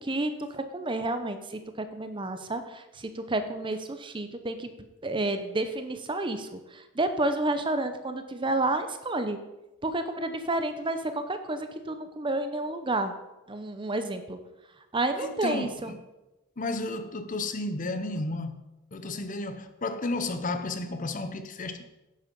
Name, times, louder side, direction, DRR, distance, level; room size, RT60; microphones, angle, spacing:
voice 1, 0.0-4.7 5.0-9.4 9.8-13.1 13.5-14.4 14.9-15.9, right 2 dB, 20° right, 0.7 m, -30 dB
voice 2, 15.2-16.0 16.6-18.6 18.9-21.9, left 2 dB, 35° left, 0.7 m, -32 dB
11.0 x 7.7 x 5.3 m
head